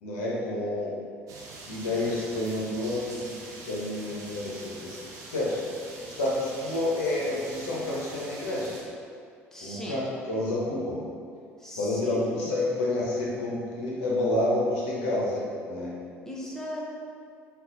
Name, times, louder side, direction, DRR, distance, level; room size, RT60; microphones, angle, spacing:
voice 1, 0.0-0.9 1.7-3.3 3.7-5.0 5.3-5.6 6.0-8.8 9.6-11.0 11.8-15.9, left 1 dB, 75° left, -5 dB, 0.6 m, -29 dB
sound 1, 1.3-8.8, right 2 dB, 55° right, 0.6 m, -44 dB
voice 2, 1.8-2.3 9.5-10.0 11.6-12.5 16.2-16.9, equal, 5° left, -4 dB, 0.7 m, -39 dB
3.9 x 2.3 x 2.5 m, 2.3 s
hypercardioid pair, 65°, 7 cm